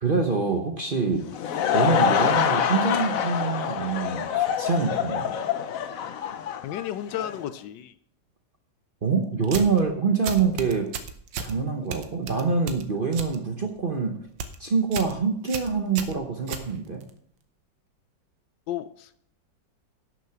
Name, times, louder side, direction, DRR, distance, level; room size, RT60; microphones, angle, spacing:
voice 1, 0.0-5.3 9.0-10.9 11.4-14.3 14.6-17.1, right 5 dB, 35° right, 3 dB, 0.9 m, -25 dB
Laughter / Crowd, 1.1-7.4, left 8 dB, 60° left, 0.9 m, -25 dB
voice 2, 6.6-7.9 18.7-19.3, left 11 dB, 75° left, 14 dB, 1.2 m, -33 dB
sound 1, 9.4-9.8 10.2-11.5 11.9-13.4 13.7-14.0 14.3-14.6 14.9-15.2 15.5-17.1, right 6 dB, 80° right, 1.6 m, -34 dB
11.5 x 6.5 x 5.8 m, 0.63 s
omnidirectional pair, 2.1 m